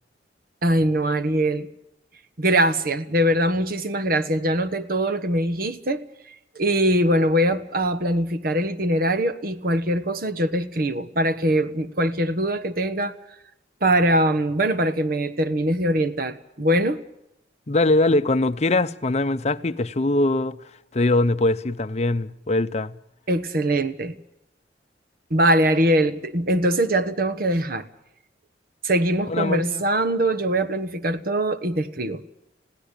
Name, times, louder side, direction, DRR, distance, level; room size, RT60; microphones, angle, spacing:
voice 1, 0.6-1.7 2.4-6.1 6.5-13.1 13.8-17.0 23.3-24.2 25.3-27.8 28.8-32.2, right 1 dB, 55° right, 1.3 m, -22 dB
voice 2, 17.7-20.6 20.9-22.9 29.3-29.8, left 2 dB, 40° left, 0.7 m, -22 dB
20.5 x 16.5 x 8.4 m
head